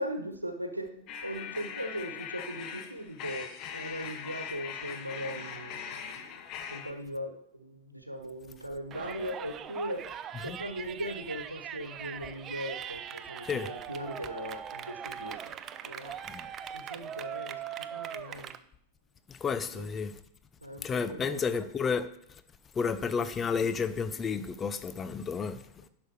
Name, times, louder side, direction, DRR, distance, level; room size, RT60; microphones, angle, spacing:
voice 1, 0.0-6.4 6.7-10.0 10.4-16.2 16.7-18.5 19.7-19.9 20.6-21.6, equal, 85° right, 1.2 m, -39 dB
sound 1, 1.1-6.9, left 7 dB, 40° left, 1.1 m, -41 dB
Yell, 8.9-18.6, right 9 dB, 30° right, 0.5 m, -41 dB
voice 2, 19.3-20.1 20.8-22.1 22.8-25.6, left 6 dB, 20° left, 0.7 m, -31 dB
11.0 x 6.2 x 4.8 m
figure-of-eight pair, 90°, 0 cm